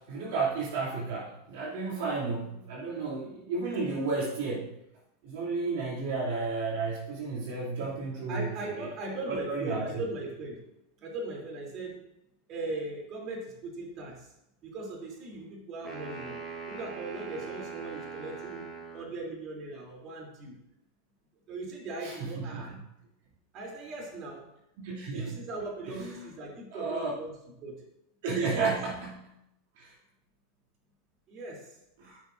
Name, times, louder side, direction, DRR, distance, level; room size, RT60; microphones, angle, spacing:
voice 1, 0.0-4.8 5.2-8.9 9.3-10.0 22.0-22.8 24.8-25.4 25.9-26.3 26.7-27.1 28.2-29.3 29.8-29.9 32.0-32.2, right 4 dB, 70° right, -5 dB, 2.7 m, -33 dB
voice 2, 8.3-10.6 11.0-12.0 12.5-14.3 14.6-20.5 21.5-22.8 23.5-24.5 25.1-27.8 28.6-28.8 31.3-31.8, right 2 dB, 45° right, -1 dB, 3.2 m, -39 dB
sound 1, 15.8-19.2, right 5 dB, 30° right, 2.2 m, -41 dB
15.0 x 6.2 x 2.6 m, 0.83 s
hypercardioid pair, 110°, 0 cm